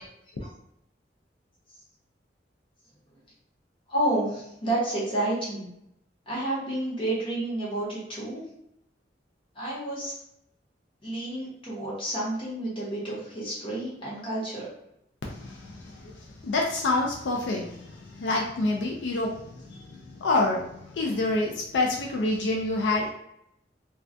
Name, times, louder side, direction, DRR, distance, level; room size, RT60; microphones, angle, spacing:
voice 1, 3.9-5.7 6.3-8.4 9.5-10.1 11.0-14.7, right 1 dB, 30° left, -7 dB, 1.0 m, -30 dB
voice 2, 15.3-23.1, left 2 dB, 80° left, -1 dB, 0.4 m, -28 dB
2.3 x 2.2 x 2.5 m, 0.78 s
head